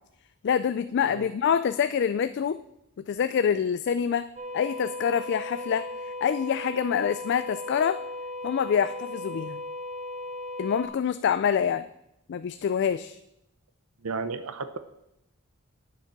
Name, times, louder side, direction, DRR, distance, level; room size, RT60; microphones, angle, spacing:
voice 1, 0.4-2.6 3.0-8.0 8.4-9.6 10.6-11.9 12.3-13.2, left 7 dB, 55° left, 12 dB, 0.3 m, -26 dB
sound 1, 4.4-10.9, left 1 dB, 30° right, 1.8 m, -37 dB
voice 2, 14.0-14.8, right 4 dB, 80° right, 11 dB, 0.7 m, -33 dB
9.1 x 7.3 x 5.9 m, 0.82 s
head